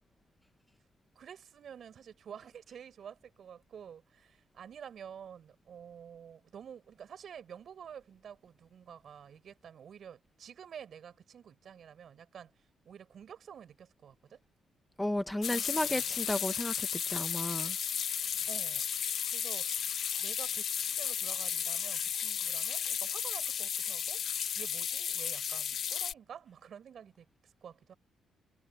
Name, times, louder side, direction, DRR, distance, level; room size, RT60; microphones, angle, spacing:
voice 1, 1.1-12.5 12.8-14.4 15.5-16.1 18.5-18.9 19.3-19.7 20.2-24.2 24.5-27.9, right 8 dB, 60° right, 7.6 m, -50 dB
voice 2, 15.0-17.8, left 1 dB, 10° left, 1.0 m, -33 dB
sound 1, 15.4-26.1, left 8 dB, 60° left, 1.1 m, -34 dB
cardioid pair, 90°, 0 cm